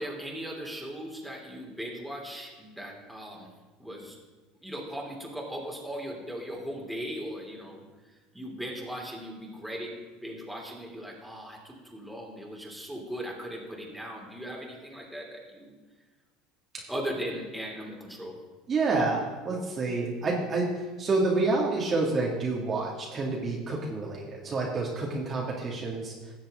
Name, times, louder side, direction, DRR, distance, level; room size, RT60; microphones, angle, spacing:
voice 1, 0.0-3.5 3.8-4.2 4.6-7.9 8.3-9.9 10.2-15.7 16.9-18.4, equal, ahead, -2 dB, 3.2 m, -38 dB
voice 2, 18.7-26.3, right 3 dB, 35° right, -3 dB, 2.3 m, -28 dB
17.0 x 7.3 x 3.8 m, 1.3 s
hypercardioid pair, 80°, 0 cm